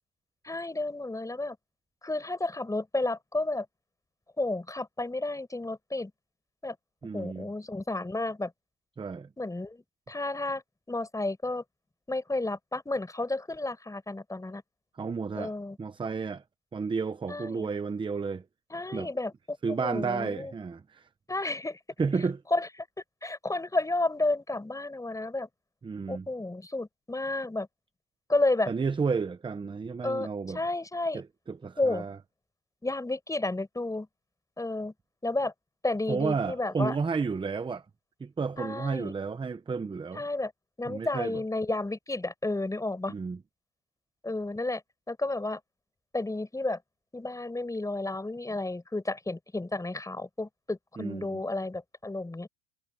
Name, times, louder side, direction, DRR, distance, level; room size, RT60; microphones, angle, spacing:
voice 1, 0.4-1.6 2.0-3.7 4.4-6.1 6.6-6.8 7.1-8.5 9.4-9.8 10.1-10.6 10.9-11.6 12.1-14.6 15.3-15.8 17.3-17.7 18.7-20.5 21.3-21.8 22.5-22.7 23.2-25.5 26.1-27.7 28.3-28.7 30.0-30.3 30.5-31.2 31.8-32.0 32.8-34.1 34.6-34.9 35.2-35.5 35.8-37.0 38.6-39.1 40.1-40.5 40.8-43.1 44.2-44.8 45.1-45.6 46.1-46.8 47.1-52.5, left 2 dB, 5° left, 6.3 m, -31 dB
voice 2, 7.0-7.5 9.0-9.3 15.0-15.5 15.8-16.4 16.7-18.4 18.9-19.1 19.6-21.1 22.0-22.4 25.8-26.3 28.7-30.6 31.1-32.2 36.1-37.8 38.2-40.2 40.9-41.4 43.1-43.4 51.0-51.4, right 5 dB, 10° right, 0.9 m, -32 dB
supercardioid pair, 120°, 45 cm